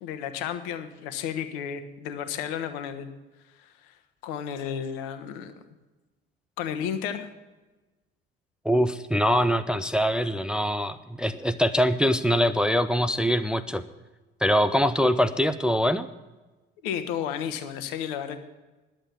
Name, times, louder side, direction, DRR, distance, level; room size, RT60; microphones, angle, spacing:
voice 1, 0.0-3.1 3.5-3.9 4.2-5.6 6.6-7.3 16.8-18.4, left 8 dB, 65° left, 10 dB, 1.2 m, -32 dB
voice 2, 8.6-13.8 14.4-16.1, equal, 5° right, 10 dB, 0.5 m, -23 dB
11.0 x 7.7 x 8.6 m, 1.2 s
figure-of-eight pair, 55°, 29 cm